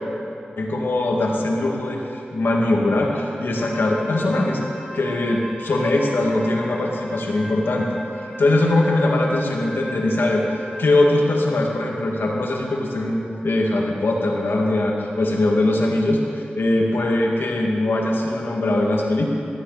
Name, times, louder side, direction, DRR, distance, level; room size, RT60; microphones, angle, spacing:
voice 1, 0.6-4.6 4.9-7.9 8.2-19.3, left 2 dB, 80° left, -1 dB, 2.2 m, -21 dB
Wind instrument woodwind instrument, 3.5-11.2, equal, 15° left, 4.0 m, -37 dB
17.5 x 14.0 x 4.2 m, 2.8 s
cardioid pair, 45°, 4 cm